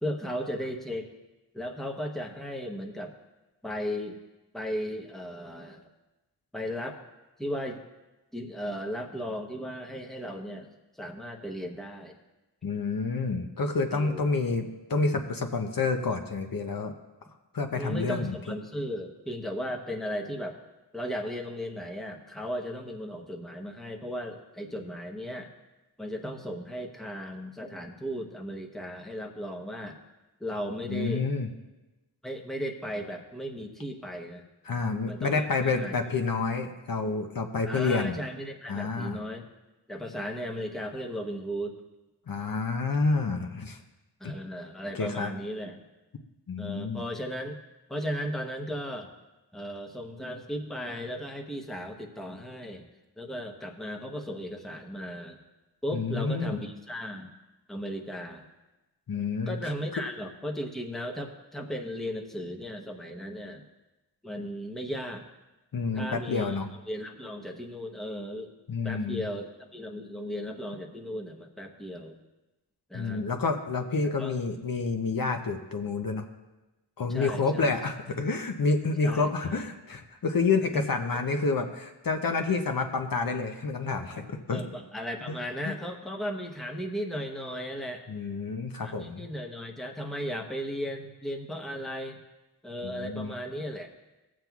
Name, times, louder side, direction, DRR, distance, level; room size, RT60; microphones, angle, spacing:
voice 1, 0.0-1.1 1.5-3.1 3.6-4.2 4.5-5.8 6.5-7.0 7.4-7.8 8.3-10.7 11.0-12.2 13.9-14.3 17.7-20.6 20.9-25.5 26.0-30.0 30.4-31.3 32.2-34.4 35.1-35.4 35.7-35.9 37.6-39.4 39.9-41.8 44.2-45.8 46.6-47.6 47.9-49.1 49.5-52.9 53.2-55.4 55.8-57.3 57.7-58.5 59.5-63.6 64.2-65.3 65.9-66.6 66.9-68.5 68.8-72.2 72.9-73.3 74.0-74.4 77.1-77.7 79.0-79.7 80.7-80.8 81.1-81.2 84.5-88.0 88.8-92.2 92.6-93.9, equal, ahead, 2 dB, 0.8 m, -36 dB
voice 2, 12.6-16.9 17.5-18.4 30.9-31.5 34.7-38.1 38.7-39.2 42.3-43.8 44.2-44.3 45.0-45.3 46.5-47.0 55.9-56.6 59.1-59.6 65.7-66.7 68.7-69.2 72.9-76.2 77.0-84.6 85.7-85.8 88.1-89.2 92.8-93.3, left 4 dB, 55° left, 5 dB, 0.7 m, -29 dB
16.5 x 7.5 x 2.4 m, 1.1 s
wide cardioid pair, 90°, 42 cm